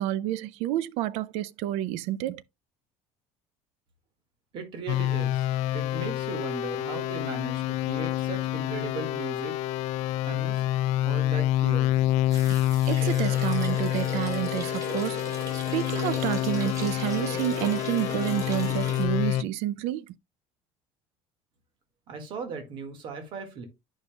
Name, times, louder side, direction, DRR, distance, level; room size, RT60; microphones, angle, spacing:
voice 1, 0.0-2.4 12.9-15.2 15.7-20.1, right 13 dB, 70° right, 0.4 m, -29 dB
voice 2, 4.5-5.5 5.7-9.5 10.0-10.6 11.0-12.0 22.1-23.7, right 4 dB, 45° right, 1.8 m, -37 dB
sound 1, 4.9-19.4, left 13 dB, 70° left, 0.5 m, -27 dB
sound 2, 12.3-19.0, right 2 dB, 30° right, 3.2 m, -39 dB
11.0 x 5.4 x 2.2 m
cardioid pair, 155°, 12 cm